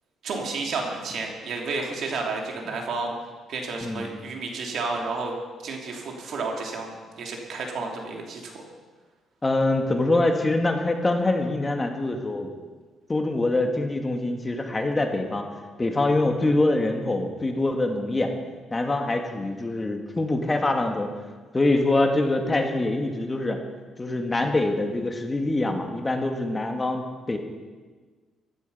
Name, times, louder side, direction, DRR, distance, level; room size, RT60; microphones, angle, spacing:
voice 1, 0.2-3.1 3.5-5.3 5.6-8.6, right 3 dB, 70° right, 1 dB, 2.9 m, -31 dB
voice 2, 3.8-4.1 9.4-12.5 13.1-15.5 15.8-18.3 18.7-21.1 21.5-23.6 24.0-27.4, left 2 dB, 20° left, 3 dB, 1.9 m, -24 dB
15.0 x 12.5 x 5.6 m, 1.4 s
cardioid pair, 90°, 0 cm